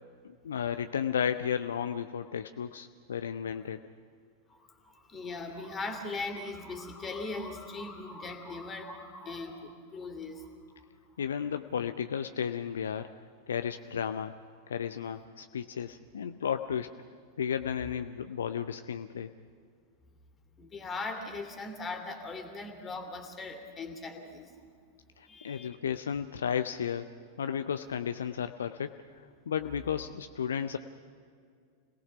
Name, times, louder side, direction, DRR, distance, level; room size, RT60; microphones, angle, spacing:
voice 1, 0.2-3.8 11.2-13.1 13.5-14.3 14.7-16.9 17.4-19.3 25.2-27.1 27.4-30.8, left 8 dB, 65° left, 10 dB, 0.5 m, -33 dB
voice 2, 4.5-10.5 20.6-24.5 25.3-25.8, left 3 dB, 20° left, 5 dB, 2.7 m, -39 dB
26.5 x 18.0 x 5.9 m, 2.2 s
figure-of-eight pair, 90°, 0 cm